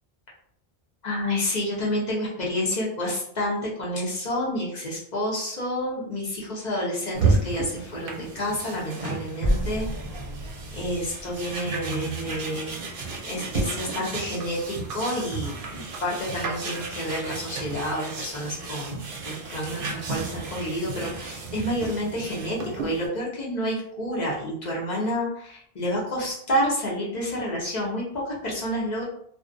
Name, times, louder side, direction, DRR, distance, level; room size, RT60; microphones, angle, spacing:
voice 1, 1.0-9.9 10.7-12.8 13.2-29.0, equal, 50° left, -4 dB, 0.7 m, -29 dB
sound 1, 7.1-23.1, right 3 dB, 65° right, 0.7 m, -32 dB
sound 2, 9.4-12.4, equal, 70° left, 1.1 m, -31 dB
2.3 x 2.1 x 2.5 m, 0.65 s
omnidirectional pair, 1.0 m